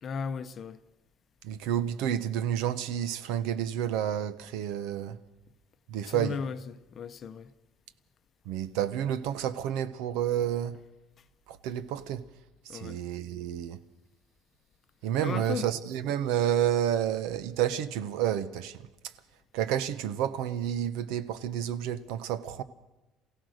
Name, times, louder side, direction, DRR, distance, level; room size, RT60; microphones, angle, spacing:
voice 1, 0.0-0.8 6.0-7.5 12.7-13.0 15.2-15.7, left 6 dB, 30° left, 0.7 m, -36 dB
voice 2, 1.4-5.2 5.9-6.4 8.4-10.8 11.5-12.2 12.6-13.8 15.0-18.9 19.5-22.6, right 10 dB, 80° right, 1.0 m, -30 dB
27.5 x 16.5 x 6.5 m
cardioid pair, 180°, 0 cm